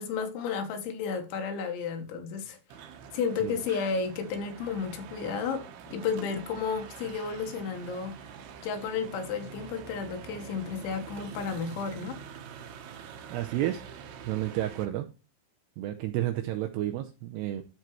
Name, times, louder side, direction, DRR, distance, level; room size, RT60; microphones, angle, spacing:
voice 1, 0.0-2.6 3.1-8.1 8.6-12.2, left 5 dB, 75° left, 3.5 m, -32 dB
sound 1, 2.7-14.9, right 7 dB, 70° right, 2.7 m, -45 dB
voice 2, 13.3-13.8 14.3-15.1 15.8-17.6, right 14 dB, 85° right, 2.4 m, -31 dB
12.5 x 4.5 x 3.0 m
omnidirectional pair, 5.5 m